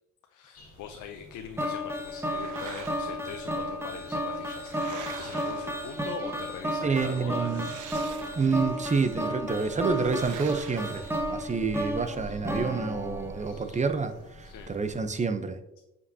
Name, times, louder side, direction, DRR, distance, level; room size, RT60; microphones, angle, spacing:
voice 1, 0.3-8.2 11.3-11.5 14.4-14.7, left 7 dB, 75° left, 5 dB, 0.7 m, -43 dB
sound 1, 0.5-15.2, equal, 55° left, 2.2 m, -48 dB
sound 2, 1.6-13.8, equal, 10° right, 1.1 m, -33 dB
sound 3, 2.1-3.3 4.1-6.3 7.4-8.8 9.9-11.8, right 9 dB, 80° right, 0.7 m, -45 dB
voice 2, 6.8-7.7 8.3-11.0 11.3-15.6, right 4 dB, 25° right, 9 dB, 0.7 m, -28 dB
7.8 x 5.4 x 2.8 m, 0.89 s
cardioid pair, 90°, 30 cm